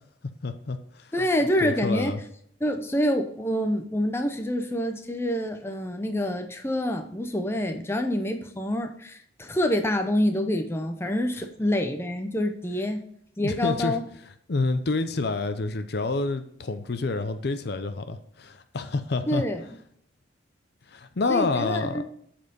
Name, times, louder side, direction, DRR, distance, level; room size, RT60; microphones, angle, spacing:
voice 1, 0.4-1.1 1.6-2.2 13.4-14.0 14.5-19.4 20.9-22.0, left 3 dB, 55° left, 10 dB, 0.5 m, -28 dB
voice 2, 1.1-2.1 2.6-13.0 13.4-14.0 19.3-19.7 21.3-22.0, left 1 dB, 10° left, 5 dB, 0.6 m, -27 dB
7.8 x 4.3 x 5.3 m, 0.67 s
head